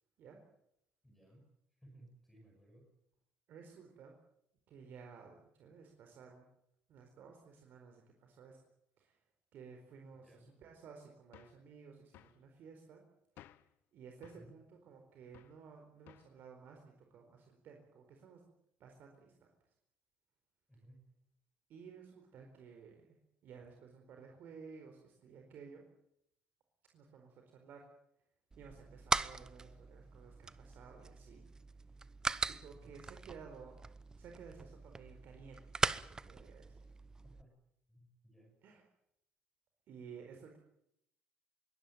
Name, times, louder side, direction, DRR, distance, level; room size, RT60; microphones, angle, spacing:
voice 1, 1.0-2.9 10.1-10.6 14.2-14.5 20.7-21.1 32.8-33.1 37.2-37.6 37.9-38.6, right 1 dB, 5° left, 1 dB, 7.6 m, -61 dB
voice 2, 3.5-4.1 4.7-6.4 6.9-8.6 9.0-9.2 9.5-10.3 10.6-13.0 13.4-18.4 18.8-19.3 21.7-23.2 23.4-25.8 26.9-27.9 28.6-31.4 32.5-33.8 34.2-35.7 36.2-36.9 38.6-38.8 39.9-40.6, right 6 dB, 60° right, 3 dB, 4.4 m, -55 dB
sound 1, 11.3-11.6 12.1-12.4 13.4-13.7 14.2-14.5 15.3-15.6 16.1-16.4, left 13 dB, 70° left, 1.0 m, -59 dB
sound 2, 28.5-37.4, right 3 dB, 20° right, 0.8 m, -40 dB
23.0 x 17.5 x 9.3 m, 0.79 s
cardioid pair, 125°, 4 cm